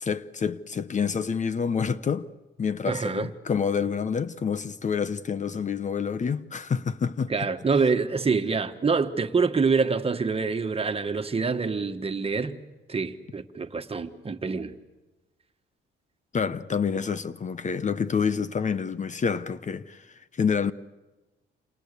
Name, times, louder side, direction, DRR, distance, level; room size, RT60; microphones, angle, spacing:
voice 1, 0.0-2.3 2.6-7.3 16.3-20.7, left 6 dB, 40° left, 0.9 m, -28 dB
voice 2, 2.9-3.3 7.3-12.6 12.9-14.7, right 4 dB, 30° right, 1.6 m, -26 dB
28.5 x 27.5 x 6.9 m
cardioid pair, 90°, 20 cm